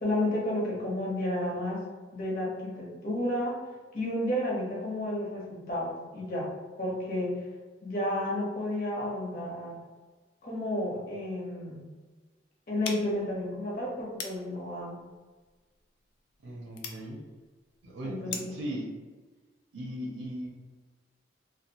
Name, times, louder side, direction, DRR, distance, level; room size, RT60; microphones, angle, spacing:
voice 1, 0.0-1.8 2.1-3.6 3.9-6.5 6.8-7.4 7.8-9.8 10.4-11.9 12.7-15.0 18.0-18.5, left 1 dB, 50° left, -4 dB, 0.8 m, -31 dB
sound 1, 12.8-18.7, left 5 dB, 65° left, 0.3 m, -44 dB
voice 2, 16.4-17.2 17.8-18.9 19.7-20.5, equal, 80° right, -2 dB, 0.5 m, -38 dB
2.4 x 2.1 x 2.8 m, 1.3 s
head